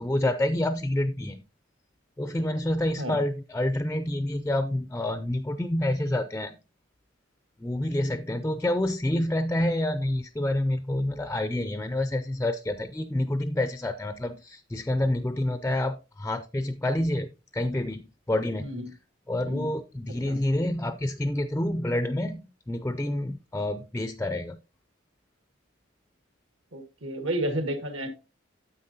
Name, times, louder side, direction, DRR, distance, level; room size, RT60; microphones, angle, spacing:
voice 1, 0.0-1.4 2.2-6.6 7.6-17.3 17.5-18.7 19.3-24.6, left 1 dB, 10° left, 10 dB, 0.4 m, -28 dB
voice 2, 18.6-18.9 19.5-19.7 20.1-20.4 26.7-28.1, right 1 dB, 75° right, 7 dB, 1.8 m, -32 dB
9.5 x 8.1 x 2.7 m, 0.30 s
head